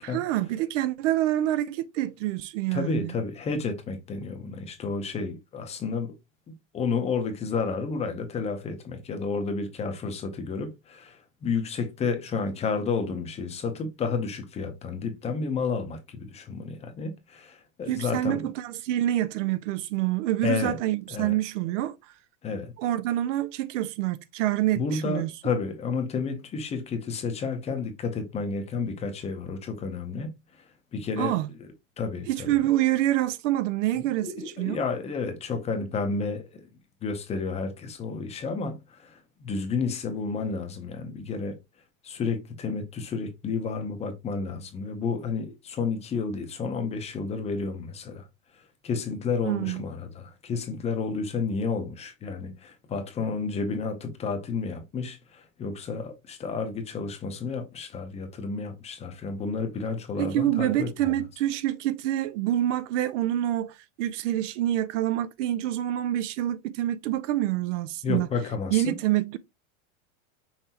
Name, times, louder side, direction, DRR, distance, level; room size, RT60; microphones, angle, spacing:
voice 1, 0.0-3.1 17.8-22.0 22.8-25.3 31.2-31.5 32.3-34.8 49.4-49.8 60.2-68.3 68.7-69.4, right 14 dB, 65° right, 0.5 m, -27 dB
voice 2, 2.7-6.1 6.7-18.4 20.4-20.8 21.1-21.3 22.4-22.7 24.7-30.3 30.9-31.4 32.0-32.5 34.0-36.6 37.0-41.6 42.0-48.3 48.8-61.2 68.0-69.0, left 4 dB, 15° left, 0.7 m, -31 dB
5.6 x 3.3 x 2.8 m
supercardioid pair, 155°, 40 cm